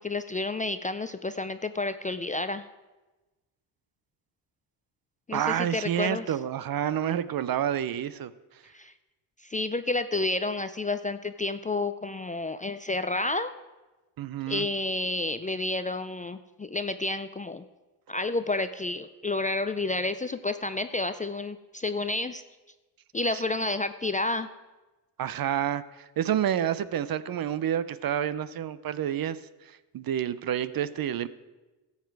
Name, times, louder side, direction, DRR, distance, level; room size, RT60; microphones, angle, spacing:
voice 1, 0.0-2.7 5.3-6.3 8.7-8.9 9.5-13.5 14.5-17.6 18.1-22.4 23.1-24.5, left 2 dB, 20° left, 10 dB, 0.4 m, -30 dB
voice 2, 5.3-8.3 14.2-14.7 23.3-23.4 25.2-29.4 29.9-31.3, right 10 dB, 50° right, 16 dB, 0.6 m, -29 dB
14.0 x 8.2 x 4.7 m, 1.1 s
cardioid pair, 70°, 47 cm